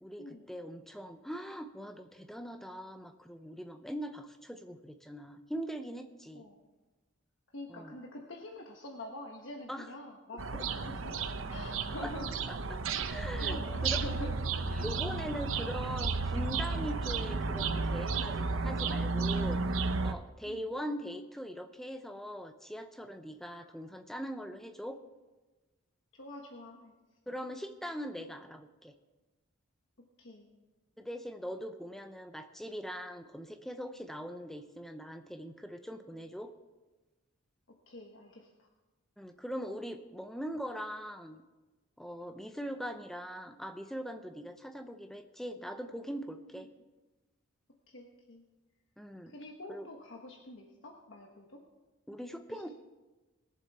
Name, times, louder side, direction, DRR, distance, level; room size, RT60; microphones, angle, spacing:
voice 1, 0.0-6.4 7.7-8.0 9.7-9.9 10.5-10.6 12.0-12.1 12.5-14.0 14.8-25.0 27.3-28.9 31.0-36.5 39.2-41.4 42.0-46.7 49.0-49.3 49.7-49.9 52.1-52.7, equal, ahead, 7 dB, 0.6 m, -41 dB
voice 2, 7.5-12.3 13.4-14.4 14.7-15.0 15.6-15.7 20.5-20.7 26.1-26.9 30.2-30.6 37.9-38.7 46.5-46.7 47.9-48.4 49.3-51.6 52.5-52.7, left 1 dB, 70° left, 0 dB, 1.3 m, -46 dB
sound 1, 10.4-20.1, right 4 dB, 80° right, 0.7 m, -33 dB
20.5 x 7.5 x 4.3 m, 1.2 s
head